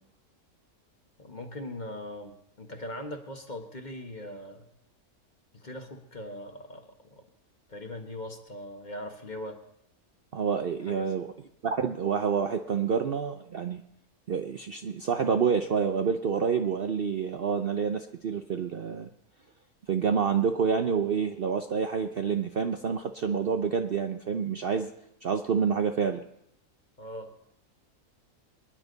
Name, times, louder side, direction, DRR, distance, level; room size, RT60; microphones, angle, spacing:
voice 1, 1.2-4.7 5.5-7.2 7.7-9.6 10.9-11.1 27.0-27.3, left 1 dB, 30° left, 4 dB, 1.5 m, -40 dB
voice 2, 10.3-11.3 11.6-13.8 14.3-19.1 19.9-24.9 25.2-26.2, right 6 dB, 50° right, 6 dB, 0.7 m, -28 dB
26.5 x 10.5 x 4.0 m, 0.78 s
omnidirectional pair, 1.5 m